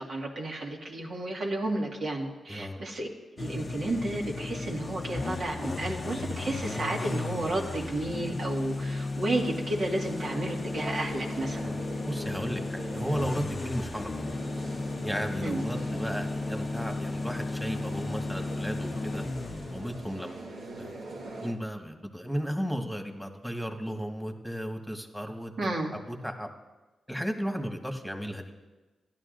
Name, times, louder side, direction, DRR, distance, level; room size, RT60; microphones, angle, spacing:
voice 1, 0.0-3.1 3.4-11.7 15.4-15.6 25.6-25.9, right 2 dB, 65° right, -1 dB, 2.0 m, -32 dB
voice 2, 2.5-2.8 11.6-11.8 12.1-14.2 15.0-19.2 19.7-20.4 20.8-21.0 21.4-25.5 25.9-26.5 27.1-28.5, equal, ahead, 3 dB, 1.6 m, -34 dB
sound 1, 3.4-20.2, left 2 dB, 45° left, 0.6 m, -34 dB
sound 2, 9.3-21.5, right 2 dB, 90° right, 1.4 m, -43 dB
16.0 x 11.0 x 2.6 m, 1.2 s
supercardioid pair, 50°, 0 cm